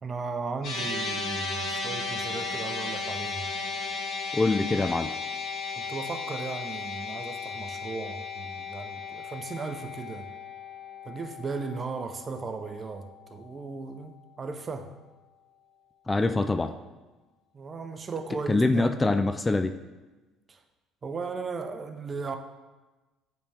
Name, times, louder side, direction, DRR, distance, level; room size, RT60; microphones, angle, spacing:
voice 1, 0.0-3.5 5.8-10.3 11.0-14.9 17.5-19.0 20.5-20.6 21.0-22.4, right 4 dB, 35° right, 7 dB, 0.6 m, -36 dB
sound 1, 0.6-13.1, left 4 dB, 65° left, 1.6 m, -35 dB
voice 2, 4.3-5.1 16.1-16.8 18.5-19.8, left 2 dB, 20° left, 9 dB, 0.3 m, -24 dB
8.3 x 3.4 x 3.3 m, 1.2 s
hypercardioid pair, 65°, 0 cm